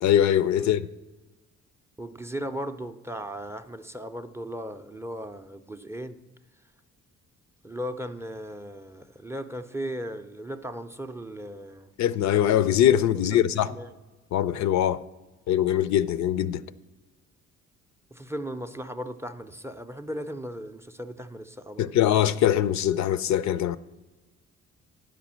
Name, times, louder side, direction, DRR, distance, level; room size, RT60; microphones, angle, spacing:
voice 1, 0.0-0.9 12.0-13.7 14.3-15.0 15.5-16.6 21.8-23.8, left 11 dB, 65° left, 0.5 m, -22 dB
voice 2, 2.0-6.2 7.6-11.9 13.3-13.9 18.1-21.9, equal, 10° right, 0.4 m, -37 dB
10.5 x 5.1 x 7.3 m
cardioid pair, 90°, 30 cm